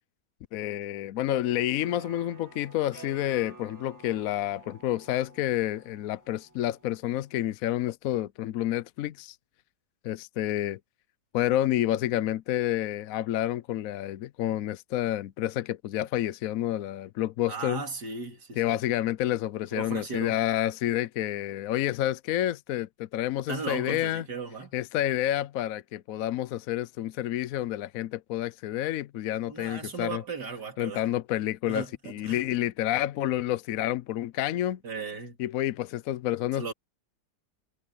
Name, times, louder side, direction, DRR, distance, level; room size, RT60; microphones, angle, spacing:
voice 1, 0.5-9.4 10.0-10.8 11.3-17.8 18.6-24.2 24.7-30.2 30.8-34.8 35.4-36.7, left 13 dB, 65° left, 0.9 m, -29 dB
sound 1, 1.8-7.4, right 4 dB, 10° right, 1.9 m, -51 dB
voice 2, 17.5-18.8 19.7-20.4 23.5-24.7 29.5-31.1 31.7-32.4 34.8-35.4 36.5-36.7, right 4 dB, 85° right, 3.4 m, -36 dB
omnidirectional pair, 1.8 m